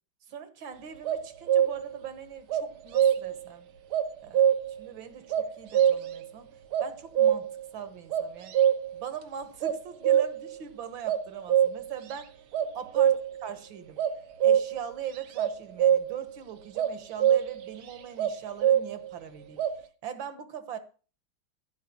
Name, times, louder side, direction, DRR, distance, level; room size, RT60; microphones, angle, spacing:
voice 1, 0.3-3.7 4.2-4.5 4.8-6.5 6.8-8.5 8.9-12.3 12.7-13.1 13.4-14.0 14.4-19.6 20.0-20.8, right 8 dB, 65° right, 2.0 m, -41 dB
sound 1, 1.0-2.0 2.5-3.4 3.9-4.8 5.3-6.3 6.7-7.7 8.1-9.0 9.6-10.5 11.1-12.1 12.5-13.5 14.0-14.9 15.4-16.3 16.8-17.7 18.2-19.1 19.6-19.8, right 9 dB, 85° right, 2.0 m, -24 dB
15.0 x 5.1 x 8.6 m
omnidirectional pair, 2.3 m